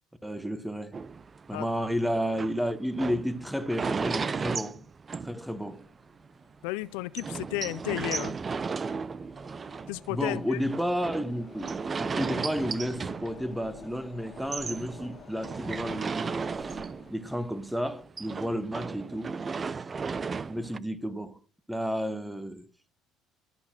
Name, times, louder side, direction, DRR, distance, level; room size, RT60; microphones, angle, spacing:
voice 1, 0.2-1.1 1.5-4.9 5.2-5.9 10.1-16.8 17.1-19.8 20.5-21.4 21.7-22.7, equal, 5° right, 1.0 m, -32 dB
sound 1, 0.9-5.9 6.3-6.4 6.6-6.7 7.2-13.9 14.3-17.3 17.6-20.8, right 5 dB, 30° right, 0.4 m, -35 dB
sound 2, 5.6-17.1, left 6 dB, 40° left, 1.9 m, -52 dB
voice 2, 6.6-8.4 9.9-10.6, left 19 dB, 90° left, 0.4 m, -33 dB
12.5 x 4.2 x 5.8 m
supercardioid pair, 100°, 0 cm